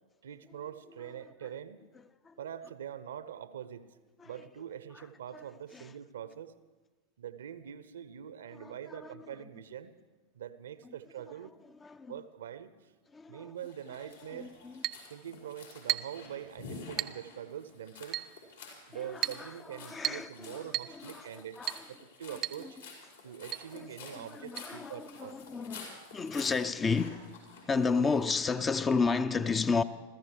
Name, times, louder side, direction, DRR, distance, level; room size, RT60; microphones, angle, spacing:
voice 1, 0.2-1.8 2.4-3.9 4.2-6.5 7.2-9.9 10.3-11.5 12.1-12.9 13.3-14.5 15.1-18.2 18.9-21.6 21.9-22.8 23.2-25.4, right 9 dB, 65° right, 0.7 m, -44 dB
voice 2, 8.6-9.3 11.8-12.1 13.1-13.5 14.3-14.8 18.9-21.8 22.3-22.7 23.7-27.4 27.7-29.8, left 4 dB, 20° left, 0.5 m, -33 dB
sound 1, 13.6-28.4, left 4 dB, 70° left, 5.1 m, -50 dB
Chink clink, 14.8-15.1 15.9-16.2 17.0-17.2 18.1-18.3 19.2-19.5 20.0-20.3 20.7-21.0 21.7-21.9 22.4-22.6 22.9-23.0 23.5-23.7 24.6-24.7, right 13 dB, 35° right, 0.5 m, -34 dB
29.0 x 14.5 x 3.3 m
figure-of-eight pair, 90°, 0 cm